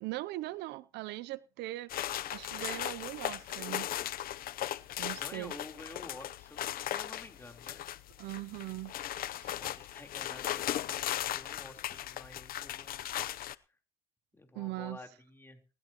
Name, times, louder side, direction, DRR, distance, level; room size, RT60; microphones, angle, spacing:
voice 1, 0.0-1.9 2.3-3.9 5.0-5.5 8.2-8.9 9.3-9.6 14.5-15.0, right 17 dB, 85° right, 0.6 m, -40 dB
sound 1, 1.9-13.5, left 12 dB, 60° left, 0.7 m, -37 dB
voice 2, 5.1-7.8 9.6-13.0 14.3-15.6, left 2 dB, 15° left, 3.7 m, -50 dB
19.5 x 15.0 x 3.0 m
cardioid pair, 110°, 17 cm